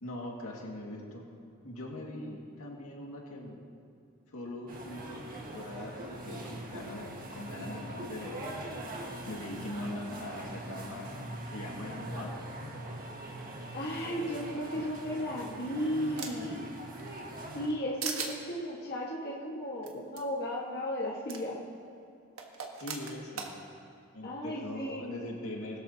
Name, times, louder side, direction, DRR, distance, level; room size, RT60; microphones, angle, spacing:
voice 1, 0.0-1.3 1.6-3.6 4.3-8.4 9.3-11.1 11.4-12.6 14.7-14.8 22.8-23.5 24.1-25.8, left 1 dB, 85° left, -1 dB, 2.1 m, -41 dB
sound 1, 4.7-17.7, right 1 dB, 45° right, 1.7 m, -42 dB
voice 2, 13.7-16.6 17.5-21.6 24.2-25.1, equal, 50° left, -4 dB, 1.7 m, -35 dB
sound 2, 15.2-16.6 17.0-17.7 18.0-18.3 19.8-19.9 20.2-20.3 21.3-21.4 22.4-23.5, right 5 dB, 80° right, 1.5 m, -38 dB
20.5 x 12.5 x 2.9 m, 2.5 s
head